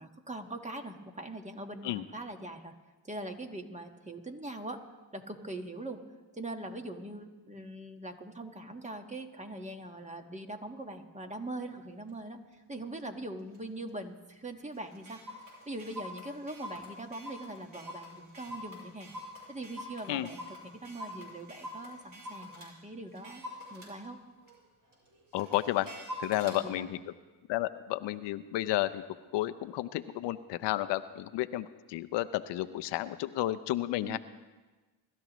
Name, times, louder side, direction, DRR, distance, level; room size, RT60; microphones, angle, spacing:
voice 1, 0.0-2.7 3.0-4.8 5.1-6.0 6.3-15.2 15.7-24.2 26.4-26.9 34.0-34.2, right 1 dB, 15° right, 5 dB, 1.5 m, -42 dB
Clock, 12.1-12.2 12.7-13.0 13.5-13.6 13.9-14.0 14.3-14.4 14.7-22.7 23.1-26.6, left 1 dB, 50° right, 5.9 m, -45 dB
voice 2, 25.3-25.9 26.2-27.0 27.5-29.0 29.3-34.2, left 15 dB, 85° left, 13 dB, 0.6 m, -32 dB
25.0 x 13.0 x 3.1 m, 1.2 s
cardioid pair, 80°, 41 cm